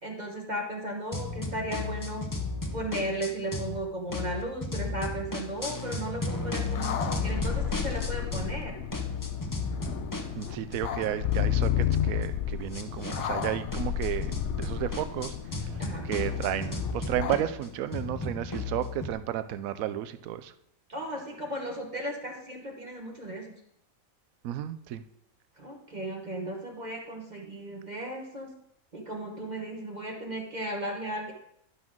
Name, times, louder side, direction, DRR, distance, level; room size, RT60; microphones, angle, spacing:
voice 1, 0.0-2.2 2.7-8.7 15.8-16.1 20.9-23.6 25.6-28.5 28.9-31.3, right 1 dB, 35° right, 1 dB, 1.1 m, -35 dB
sound 1, 1.1-3.8 4.1-8.6 8.9-19.1, left 3 dB, 20° left, 0.6 m, -35 dB
sound 2, 6.6-17.4, left 10 dB, 65° left, 0.8 m, -32 dB
voice 2, 10.3-15.4 15.6-20.5 24.4-25.0, right 11 dB, 75° right, 12 dB, 1.0 m, -33 dB
11.5 x 6.1 x 3.6 m, 0.74 s
omnidirectional pair, 1.5 m